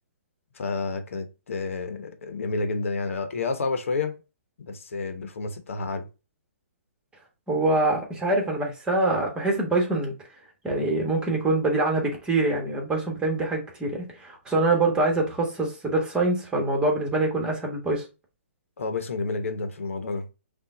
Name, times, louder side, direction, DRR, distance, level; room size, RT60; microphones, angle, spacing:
voice 1, 0.5-4.2 4.6-6.1 18.8-20.3, left 3 dB, 75° left, 0.8 m, -30 dB
voice 2, 7.5-10.1 10.6-18.0, right 2 dB, 10° right, 1.4 m, -24 dB
5.6 x 2.3 x 3.8 m
hypercardioid pair, 135°, 7 cm